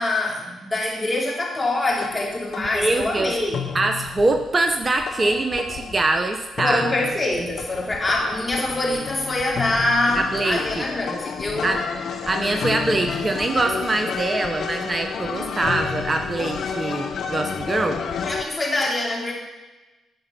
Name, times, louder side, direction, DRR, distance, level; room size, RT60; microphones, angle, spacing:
voice 1, 0.0-3.6 6.6-11.7 18.2-19.3, left 2 dB, 25° left, -2 dB, 3.0 m, -24 dB
sound 1, 2.0-18.4, left 6 dB, 65° left, 0.6 m, -31 dB
voice 2, 2.7-3.3 3.7-6.8 10.2-10.8 11.6-11.8 12.3-18.0, right 2 dB, 35° right, 6 dB, 0.8 m, -23 dB
10.5 x 5.0 x 5.8 m, 1.1 s
hypercardioid pair, 45°, 0 cm